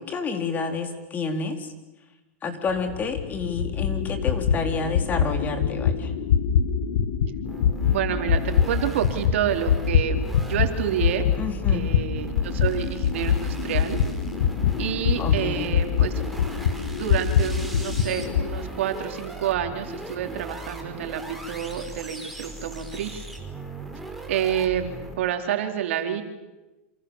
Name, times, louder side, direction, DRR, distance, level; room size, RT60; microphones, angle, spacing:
voice 1, 0.0-1.7 2.4-6.1 11.3-11.9 15.2-15.7, left 4 dB, 25° left, 5 dB, 4.2 m, -29 dB
sound 1, 2.7-10.7 11.0-18.5, left 8 dB, 75° left, 2.2 m, -24 dB
sound 2, 7.4-25.2, right 2 dB, ahead, 5.4 m, -38 dB
voice 2, 7.9-11.2 11.7-14.0 14.8-16.1 16.9-23.3 24.3-26.2, right 10 dB, 75° right, 5 dB, 4.0 m, -28 dB
29.0 x 28.0 x 7.4 m, 1.0 s
supercardioid pair, 130°, 7 cm